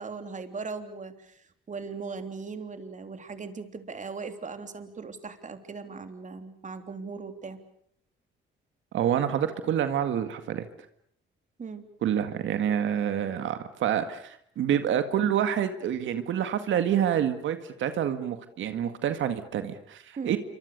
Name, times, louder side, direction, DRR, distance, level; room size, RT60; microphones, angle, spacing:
voice 1, 0.0-7.6 11.6-11.8 20.2-20.4, right 4 dB, 40° right, 8 dB, 3.4 m, -39 dB
voice 2, 8.9-10.7 12.0-20.4, right 9 dB, 75° right, 9 dB, 2.0 m, -27 dB
28.0 x 25.0 x 6.7 m, 0.67 s
cardioid pair, 90°, 20 cm